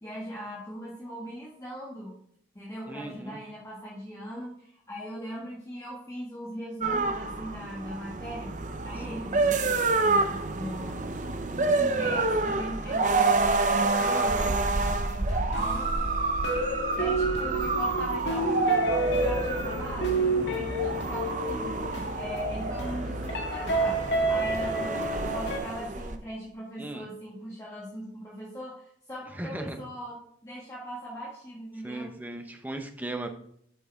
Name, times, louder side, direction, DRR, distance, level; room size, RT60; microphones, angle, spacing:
voice 1, 0.0-2.1 2.5-8.5 8.8-11.1 11.7-15.9 16.7-30.2 30.4-32.1, equal, 15° left, -6 dB, 1.6 m, -40 dB
voice 2, 2.9-3.4 9.1-9.3 14.0-14.6 26.8-27.1 29.4-29.8 31.8-33.3, right 2 dB, 10° right, 5 dB, 0.7 m, -36 dB
sound 1, 6.8-26.2, right 3 dB, 40° right, 0.6 m, -28 dB
sound 2, 14.7-25.6, right 1 dB, 80° left, 1.5 m, -30 dB
8.2 x 6.1 x 3.5 m, 0.68 s
head